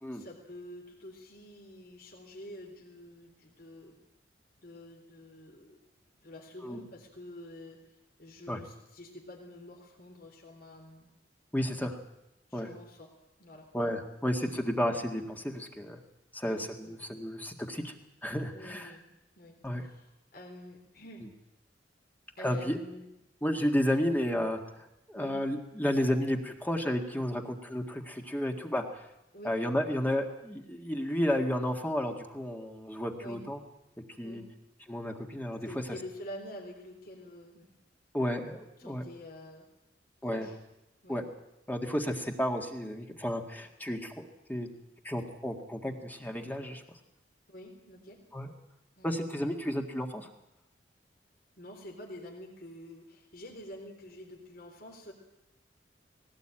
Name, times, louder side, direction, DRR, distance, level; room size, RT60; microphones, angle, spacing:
voice 1, 0.1-3.9 4.6-5.8 6.2-7.8 8.2-11.1 12.5-13.1 13.4-13.7 14.4-14.6 16.4-17.0 18.5-19.1 19.4-21.2 22.4-23.1 25.1-25.4 29.3-29.6 33.2-33.4 34.2-34.5 35.6-37.7 38.8-39.7 40.2-40.6 41.0-41.2 47.5-48.2 49.0-49.1 51.6-55.1, left 1 dB, 55° left, 0 dB, 3.8 m, -47 dB
voice 2, 11.5-12.0 12.5-12.7 13.7-16.0 16.3-17.9 18.2-18.9 19.6-19.8 22.4-22.8 23.4-24.6 25.1-29.0 29.4-33.6 34.2-34.4 34.9-35.7 38.1-39.0 40.2-40.5 41.1-41.2 41.7-44.1 44.5-44.7 45.0-46.8 48.3-48.5 49.0-50.3, equal, 10° left, 3 dB, 1.8 m, -32 dB
19.0 x 17.5 x 8.9 m, 0.89 s
head